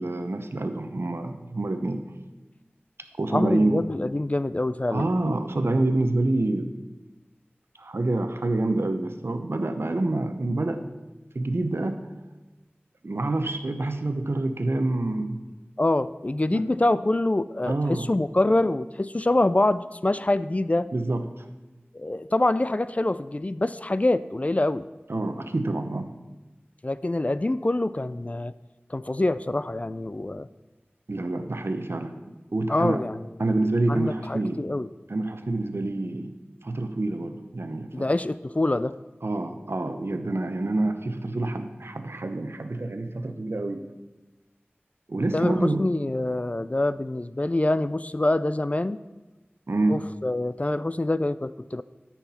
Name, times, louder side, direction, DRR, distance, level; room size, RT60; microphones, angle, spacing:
voice 1, 0.0-2.0 3.2-3.9 4.9-6.7 7.8-10.8 11.3-12.1 13.0-15.4 16.5-16.7 17.7-18.1 20.9-21.5 25.1-26.1 31.1-32.1 32.5-33.1 33.4-34.6 35.1-36.3 36.6-38.0 39.2-43.8 45.1-45.9 49.7-50.0, right 2 dB, 70° right, 7 dB, 0.8 m, -27 dB
voice 2, 3.3-5.4 15.8-20.9 21.9-24.8 26.8-28.5 28.9-30.5 32.7-33.2 33.9-34.9 37.9-38.9 45.3-49.0 49.9-51.8, left 2 dB, 35° left, 15 dB, 0.3 m, -25 dB
13.0 x 5.8 x 4.2 m, 1.1 s
wide cardioid pair, 40°, 4 cm